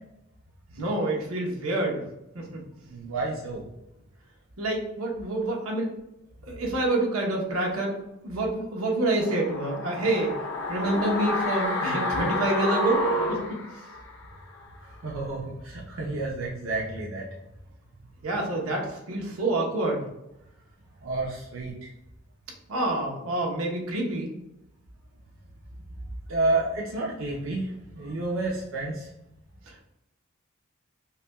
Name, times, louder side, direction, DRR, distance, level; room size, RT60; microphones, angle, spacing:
voice 1, 0.7-2.0 2.3-2.6 4.6-5.9 6.5-8.0 8.2-10.4 10.7-13.6 18.2-20.1 22.7-24.3 29.7-29.8, right 2 dB, 90° right, 0 dB, 0.9 m, -27 dB
voice 2, 2.9-3.6 14.8-17.3 21.0-21.9 26.3-29.1, right 2 dB, 65° right, -3 dB, 0.6 m, -30 dB
sound 1, 9.2-14.3 14.6-14.7, left 1 dB, 55° left, 0.6 m, -29 dB
5.6 x 2.2 x 2.2 m, 0.88 s
head